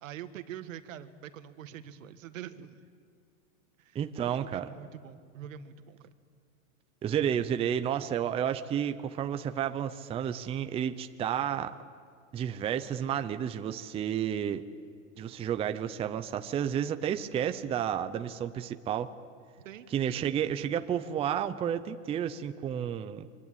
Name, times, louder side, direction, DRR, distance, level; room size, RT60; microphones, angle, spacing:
voice 1, 0.0-2.8 3.8-4.0 4.4-6.1 19.6-19.9 20.1-20.3, right 10 dB, 75° right, 10 dB, 1.6 m, -44 dB
voice 2, 3.9-4.7 7.0-11.7 12.3-14.6 15.2-19.1 19.9-23.3, right 9 dB, 15° right, 9 dB, 0.6 m, -31 dB
24.5 x 24.0 x 9.0 m, 2.2 s
supercardioid pair, 140°, 39 cm